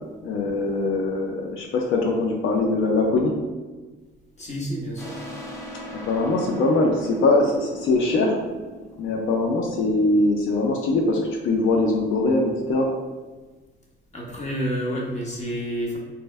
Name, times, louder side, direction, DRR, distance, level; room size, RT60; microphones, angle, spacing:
voice 1, 0.2-3.3 5.9-8.4 9.0-11.2 11.4-12.9, left 2 dB, 85° left, 1 dB, 0.5 m, -22 dB
voice 2, 4.4-5.2 14.1-16.0, equal, 35° left, -3 dB, 1.1 m, -29 dB
sound 1, 5.0-10.3, left 1 dB, 15° left, 0.9 m, -40 dB
4.3 x 2.0 x 3.3 m, 1.3 s
cardioid pair, 90°, 20 cm